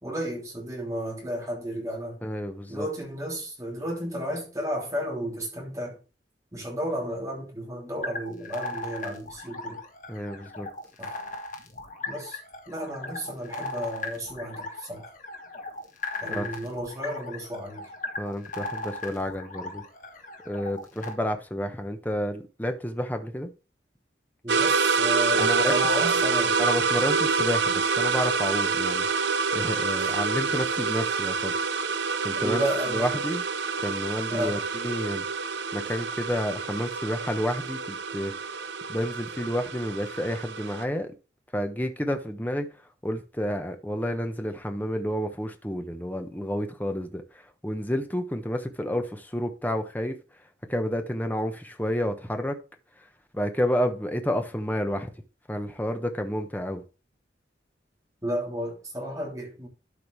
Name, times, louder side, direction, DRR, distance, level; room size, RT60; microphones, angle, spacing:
voice 1, 0.0-2.2 2.7-6.0 6.5-9.8 11.0-11.2 12.1-12.4 12.7-15.1 16.2-17.9 24.4-26.6 30.0-30.2 32.4-33.1 34.3-34.6 58.2-59.7, equal, 20° right, 3.1 m, -33 dB
voice 2, 2.2-2.9 10.1-10.7 16.3-16.5 18.2-19.8 20.4-23.5 25.4-25.7 26.1-26.2 26.6-29.1 29.5-31.5 32.2-33.4 33.8-35.3 35.7-38.3 38.9-41.1 41.5-42.7 43.0-50.2 50.7-52.6 53.3-55.1 55.5-56.8, equal, 10° left, 1.1 m, -30 dB
sound 1, 8.0-21.1, left 3 dB, 45° left, 1.6 m, -37 dB
sound 2, 24.5-40.8, right 5 dB, 70° right, 0.7 m, -27 dB
12.5 x 5.4 x 3.3 m
head